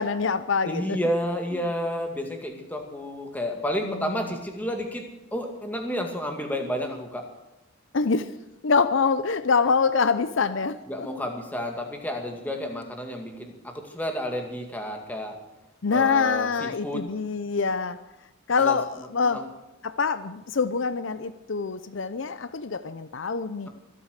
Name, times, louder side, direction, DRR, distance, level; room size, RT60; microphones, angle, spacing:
voice 1, 0.0-1.0 3.8-4.3 7.9-8.3 8.6-11.3 15.8-18.0 18.5-18.9 19.1-19.4 19.8-23.7, left 5 dB, 65° left, 13 dB, 0.6 m, -25 dB
voice 2, 0.6-7.3 10.9-15.4 15.9-17.0 18.6-18.8 19.2-19.4, equal, 10° left, 3 dB, 2.1 m, -31 dB
24.0 x 8.6 x 6.6 m, 0.94 s
head